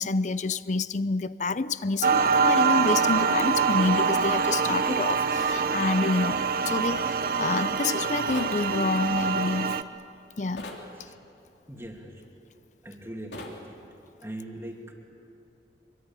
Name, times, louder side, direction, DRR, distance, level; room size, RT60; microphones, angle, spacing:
voice 1, 0.0-9.9 10.4-10.7, left 3 dB, 45° left, 0.6 m, -28 dB
sound 1, 2.0-9.8, right 5 dB, 55° right, 0.8 m, -25 dB
sound 2, 8.3-8.6 10.6-10.9 13.3-13.6, left 2 dB, 75° left, 3.2 m, -39 dB
voice 2, 11.7-12.2 12.8-13.8 14.2-14.9, right 1 dB, 15° right, 2.8 m, -41 dB
24.5 x 23.5 x 9.0 m
head